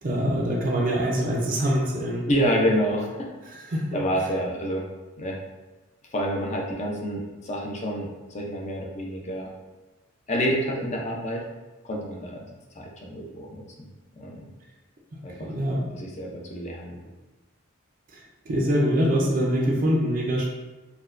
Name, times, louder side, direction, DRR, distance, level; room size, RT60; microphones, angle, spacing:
voice 1, 0.0-2.3 3.7-3.8 15.4-15.9 18.1-18.2 18.5-20.5, equal, 40° right, -1 dB, 0.5 m, -24 dB
voice 2, 2.3-3.3 3.9-4.8 5.2-5.4 6.1-9.5 10.3-11.5 11.8-12.4 12.8-13.9 14.1-14.5 15.2-15.5 15.9-17.0, equal, 35° left, -1 dB, 0.5 m, -28 dB
4.3 x 2.2 x 2.5 m, 1.2 s
head